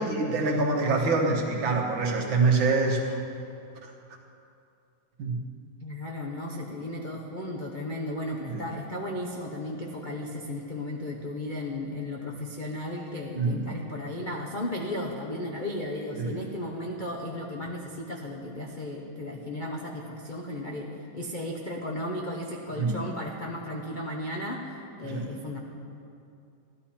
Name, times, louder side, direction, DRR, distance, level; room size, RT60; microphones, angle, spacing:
voice 1, 0.0-3.2 3.8-3.9 5.2-5.4 8.5-8.6 13.3-13.7 16.2-16.4 22.8-23.0 25.0-25.3, right 3 dB, 70° right, 1 dB, 2.1 m, -25 dB
voice 2, 5.8-25.6, left 1 dB, 50° left, -1 dB, 0.6 m, -35 dB
14.5 x 12.0 x 4.3 m, 2.5 s
omnidirectional pair, 2.3 m